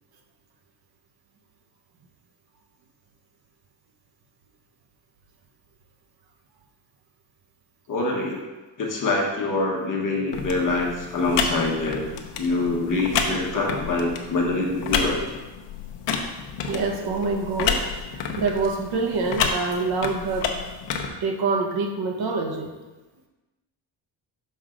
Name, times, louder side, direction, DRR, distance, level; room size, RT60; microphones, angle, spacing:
voice 1, 7.9-8.4 8.8-12.1 12.4-15.2, left 2 dB, 45° left, -1 dB, 1.2 m, -25 dB
sound 1, 10.3-21.1, left 6 dB, 70° left, 0.8 m, -30 dB
voice 2, 16.7-20.6 21.2-22.7, right 4 dB, 55° right, 3 dB, 0.9 m, -26 dB
6.2 x 5.5 x 3.8 m, 1.2 s
cardioid pair, 170°, 45 cm